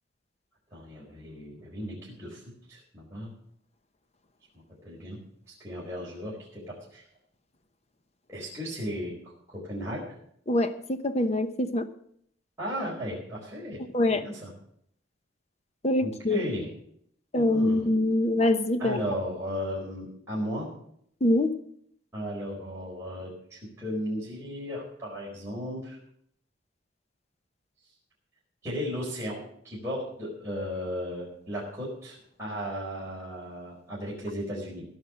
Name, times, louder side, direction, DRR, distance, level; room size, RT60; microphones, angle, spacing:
voice 1, 0.7-2.4 2.7-3.3 4.8-5.2 5.6-7.0 8.3-9.1 9.5-10.0 12.6-13.8 14.1-14.5 16.0-16.7 17.3-17.9 18.8-20.7 22.1-26.0 28.6-34.8, equal, 15° right, -7 dB, 4.5 m, -35 dB
voice 2, 10.5-11.8 13.9-14.2 15.8-16.4 17.3-19.0 21.2-21.5, left 1 dB, 35° left, 10 dB, 0.9 m, -24 dB
17.0 x 6.0 x 7.6 m, 0.67 s
head